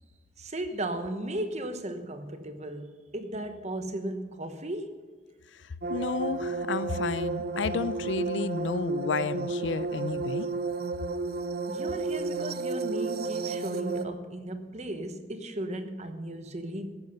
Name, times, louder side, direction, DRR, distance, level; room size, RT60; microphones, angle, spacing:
voice 1, 0.4-5.0 11.7-16.9, right 1 dB, 35° right, 8 dB, 1.1 m, -36 dB
sound 1, 5.8-14.1, right 3 dB, 55° right, 0.7 m, -32 dB
voice 2, 5.9-10.5, left 4 dB, 70° left, 16 dB, 0.5 m, -31 dB
14.0 x 11.0 x 5.4 m, 1.5 s
head